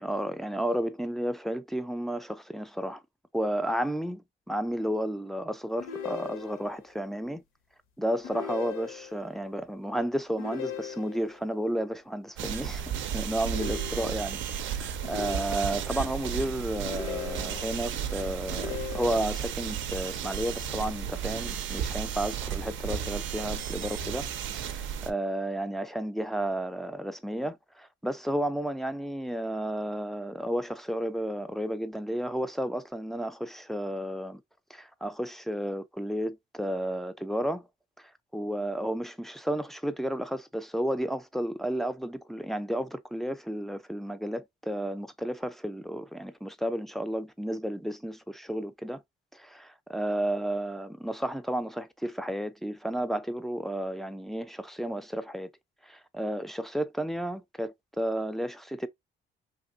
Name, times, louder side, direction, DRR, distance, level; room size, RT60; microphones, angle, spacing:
voice 1, 0.0-3.0 3.3-7.4 8.0-24.3 24.5-34.4 34.7-37.7 38.0-49.0 49.3-55.5 55.8-58.9, right 1 dB, ahead, 0.3 m, -32 dB
sound 1, 5.8-6.8 8.2-9.3 10.4-11.4 13.4-14.4 15.0-16.0 16.8-17.9 18.5-19.5, left 8 dB, 90° left, 0.7 m, -39 dB
sound 2, 12.4-25.1, right 8 dB, 75° right, 0.4 m, -34 dB
3.0 x 2.6 x 2.5 m
cardioid pair, 90°, 20 cm